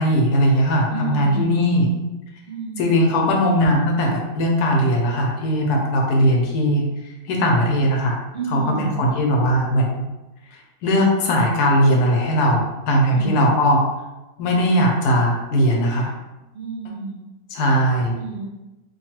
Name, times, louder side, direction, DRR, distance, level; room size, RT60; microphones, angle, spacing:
voice 1, 0.0-1.9 2.8-6.8 7.2-8.2 8.5-9.9 10.8-13.8 14.4-16.1 17.5-18.2, equal, 75° left, 0 dB, 1.1 m, -19 dB
voice 2, 0.9-1.7 2.5-3.0 8.3-9.0 13.1-13.5 16.5-17.2 18.2-18.4, right 4 dB, 45° right, -6 dB, 0.9 m, -30 dB
2.8 x 2.3 x 2.9 m, 1.0 s
omnidirectional pair, 1.7 m